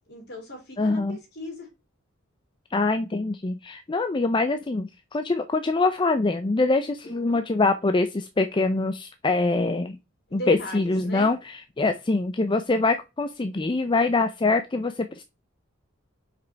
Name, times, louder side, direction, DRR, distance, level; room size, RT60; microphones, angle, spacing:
voice 1, 0.1-1.7 7.0-7.4 10.3-11.3 11.8-11.9, left 1 dB, 55° left, 3.5 m, -38 dB
voice 2, 0.8-1.2 2.7-10.0 10.3-11.4 11.8-15.2, left 3 dB, 25° left, 0.5 m, -24 dB
5.9 x 5.0 x 4.6 m
head